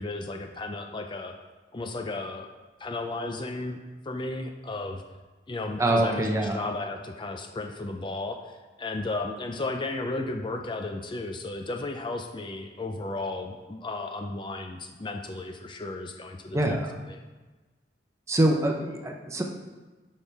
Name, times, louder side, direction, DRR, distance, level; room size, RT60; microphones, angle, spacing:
voice 1, 0.0-1.3 1.7-2.5 2.8-3.8 4.0-5.0 5.5-6.3 6.5-16.8 17.1-17.2, left 2 dB, 25° left, 4 dB, 0.5 m, -34 dB
voice 2, 5.8-6.6 16.5-16.9 18.3-19.4, right 1 dB, 15° right, 2 dB, 0.8 m, -24 dB
10.5 x 5.5 x 3.4 m, 1.2 s
head